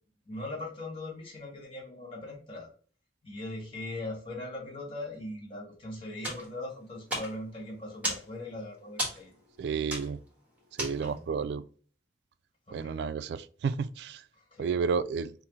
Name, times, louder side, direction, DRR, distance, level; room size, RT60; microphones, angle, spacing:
voice 1, 0.2-2.7 3.2-9.4 11.0-11.2 12.7-13.0 14.3-14.7, left 2 dB, 30° left, 1.3 m, -40 dB
sound 1, 6.2-11.4, equal, 10° right, 1.4 m, -37 dB
voice 2, 9.6-10.2 10.8-11.6 12.7-14.2 14.6-15.3, right 5 dB, 70° right, 0.3 m, -31 dB
5.8 x 2.1 x 3.0 m
head